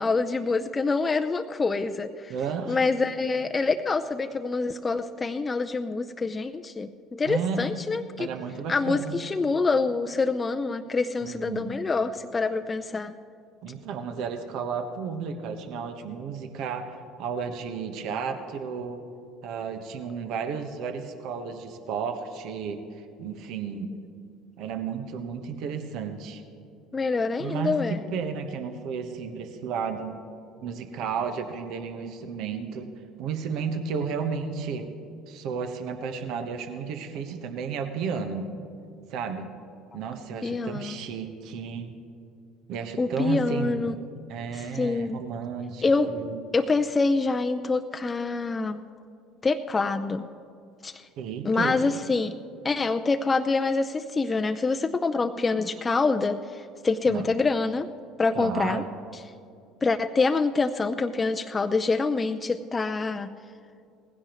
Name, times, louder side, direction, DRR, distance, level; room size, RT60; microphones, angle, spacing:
voice 1, 0.0-2.3 2.7-8.3 8.7-13.1 26.9-28.0 40.4-41.0 43.0-44.0 44.8-45.2 45.8-46.1 46.5-48.8 49.4-50.3 50.8-51.0 51.4-52.3 52.6-57.9 58.2-58.8 59.8-63.3, left 3 dB, 25° left, 7 dB, 0.5 m, -26 dB
voice 2, 2.3-2.8 7.3-7.7 8.2-9.2 11.2-11.8 13.6-19.0 19.4-23.9 24.6-26.4 27.4-30.1 30.6-32.9 33.2-34.9 35.3-38.5 39.1-39.5 39.9-41.9 42.7-44.0 44.3-46.4 51.2-51.8 57.1-57.2 58.3-58.9, right 6 dB, 60° right, 7 dB, 1.2 m, -33 dB
19.0 x 16.0 x 3.1 m, 2.5 s
hypercardioid pair, 65°, 0 cm